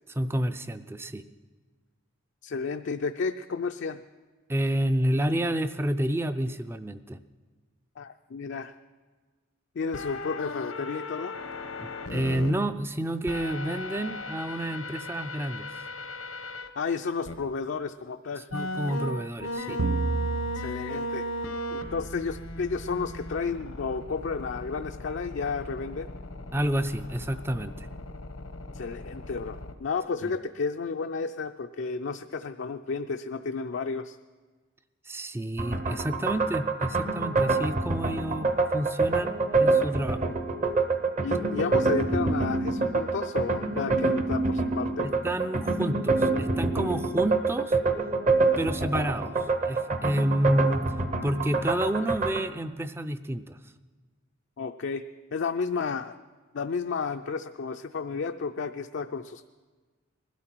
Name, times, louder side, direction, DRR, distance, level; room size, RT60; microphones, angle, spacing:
voice 1, 0.1-1.2 4.5-7.2 11.8-15.7 18.5-19.8 26.5-27.9 30.2-30.3 35.0-40.2 45.0-47.8 48.6-50.8 51.2-53.6, right 1 dB, 10° right, 11 dB, 0.4 m, -29 dB
voice 2, 2.4-4.0 8.0-8.7 9.8-11.4 16.8-18.5 20.5-21.3 21.7-26.1 28.7-34.2 41.2-45.1 54.6-55.0 55.3-56.2 56.5-59.5, left 5 dB, 60° left, 5 dB, 0.4 m, -32 dB
sound 1, 9.9-12.5 13.3-16.7 17.3-17.4 18.5-29.7, left 1 dB, 90° left, 1.0 m, -37 dB
sound 2, 19.8-22.5, right 3 dB, 80° right, 0.7 m, -33 dB
sound 3, 35.6-52.5, right 3 dB, 35° right, 0.8 m, -26 dB
20.5 x 12.5 x 4.5 m, 1.4 s
head